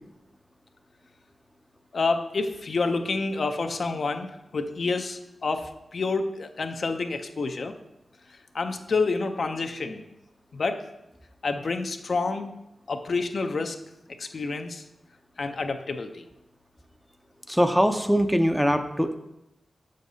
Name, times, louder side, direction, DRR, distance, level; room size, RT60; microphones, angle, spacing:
voice 1, 1.9-4.3 4.5-7.7 8.5-10.0 10.5-10.8 11.4-12.5 12.9-13.8 14.2-14.8 15.4-16.2, left 3 dB, 70° left, 6 dB, 0.5 m, -28 dB
voice 2, 17.5-19.2, equal, ahead, 7 dB, 0.5 m, -22 dB
6.6 x 6.3 x 2.7 m, 0.88 s
cardioid pair, 45°, 0 cm